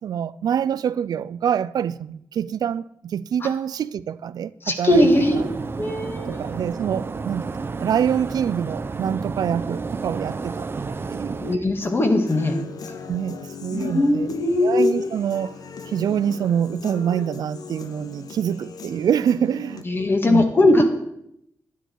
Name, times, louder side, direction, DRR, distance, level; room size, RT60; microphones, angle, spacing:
voice 1, 0.0-5.1 5.3-5.4 6.3-7.5 7.8-11.4 13.1-14.3 14.6-15.6 15.9-19.8 20.3-20.5, right 8 dB, 80° right, 0.3 m, -25 dB
voice 2, 4.6-5.4 5.8-6.5 11.4-12.6 13.7-15.1 19.8-20.9, left 1 dB, 35° left, 1.8 m, -19 dB
Combine Harvester, 4.9-11.6, right 4 dB, 35° right, 0.6 m, -31 dB
Human voice / Guitar, 11.8-19.8, left 5 dB, 80° left, 0.9 m, -39 dB
11.0 x 10.5 x 4.5 m
wide cardioid pair, 120°, 7 cm